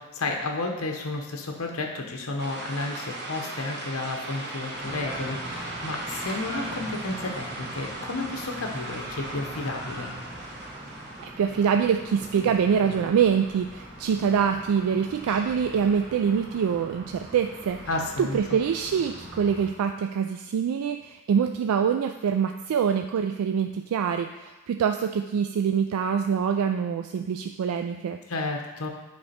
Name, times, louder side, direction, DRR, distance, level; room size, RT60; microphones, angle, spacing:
voice 1, 0.0-10.1 17.9-18.4 28.3-28.9, left 2 dB, 75° left, 2 dB, 0.9 m, -32 dB
sound 1, 2.4-11.3, right 2 dB, 50° right, 1.1 m, -38 dB
sound 2, 4.7-19.7, right 1 dB, 5° right, 1.7 m, -41 dB
voice 2, 11.4-17.8 18.2-28.2, right 7 dB, 85° right, 6 dB, 0.3 m, -25 dB
8.3 x 3.3 x 4.2 m, 1.2 s
head